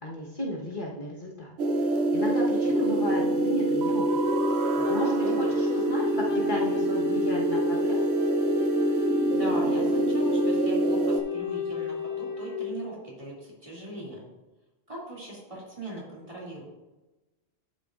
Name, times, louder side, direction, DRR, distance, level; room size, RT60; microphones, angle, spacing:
voice 1, 0.0-1.5 1.9-4.2 4.6-8.0, left 1 dB, 50° left, -3 dB, 1.3 m, -34 dB
sound 1, 1.6-11.2, right 2 dB, 75° right, 0.9 m, -25 dB
Wind instrument woodwind instrument, 4.0-12.7, left 7 dB, 75° left, 1.4 m, -32 dB
voice 2, 5.2-5.6 9.3-14.2 14.9-16.6, right 1 dB, 30° right, -5 dB, 2.6 m, -39 dB
11.5 x 6.8 x 2.4 m, 1.1 s
omnidirectional pair, 1.1 m